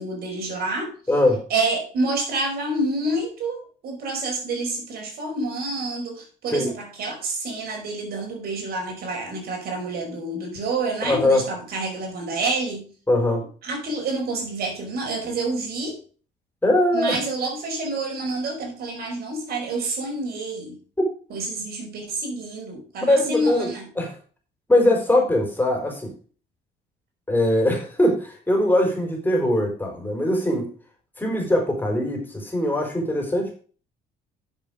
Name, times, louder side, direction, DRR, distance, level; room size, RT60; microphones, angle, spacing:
voice 1, 0.0-0.9 1.5-12.9 13.6-16.0 16.9-20.8 21.3-23.9, right 2 dB, 65° right, 2 dB, 5.1 m, -28 dB
voice 2, 1.1-1.4 6.5-6.7 11.0-11.4 13.1-13.4 16.6-17.2 23.0-24.1 24.7-26.1 27.3-30.7 31.2-33.5, left 1 dB, 10° left, 2 dB, 4.3 m, -21 dB
11.0 x 7.1 x 5.1 m, 0.39 s
cardioid pair, 110°, 17 cm